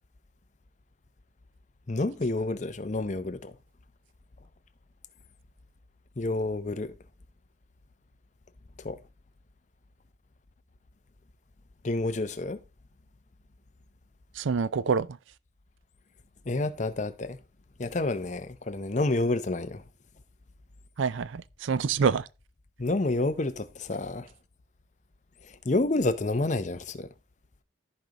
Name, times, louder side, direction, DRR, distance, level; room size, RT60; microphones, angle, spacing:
voice 1, 1.9-3.5 6.2-6.9 8.8-9.0 11.8-12.6 16.5-17.4 17.8-19.8 22.8-24.3 25.6-27.1, left 2 dB, 40° left, 0.6 m, -29 dB
voice 2, 14.4-15.2 21.0-22.3, right 5 dB, 80° right, 0.4 m, -26 dB
14.5 x 5.1 x 2.9 m
head